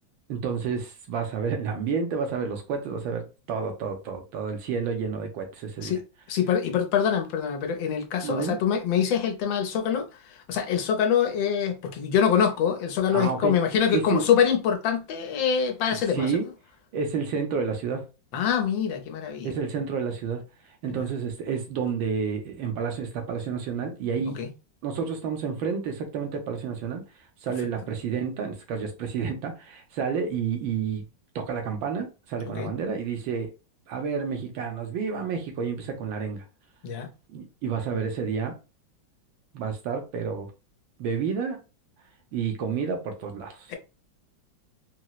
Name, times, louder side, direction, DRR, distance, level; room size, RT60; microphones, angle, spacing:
voice 1, 0.3-6.0 8.2-8.6 13.1-14.2 16.1-16.5 16.9-18.0 19.4-20.4 20.8-24.4 24.8-27.0 27.4-31.0 31.3-33.5 33.9-36.4 37.3-38.6 39.5-40.5 41.0-41.6 42.3-43.8, right 6 dB, 80° right, 1.5 m, -30 dB
voice 2, 6.3-10.1 10.5-16.3 18.3-19.5 20.8-20.9 24.4-24.5 32.6-32.7 36.8-37.1 43.7-43.8, left 7 dB, 80° left, 1.4 m, -24 dB
4.3 x 2.0 x 2.2 m
omnidirectional pair, 2.1 m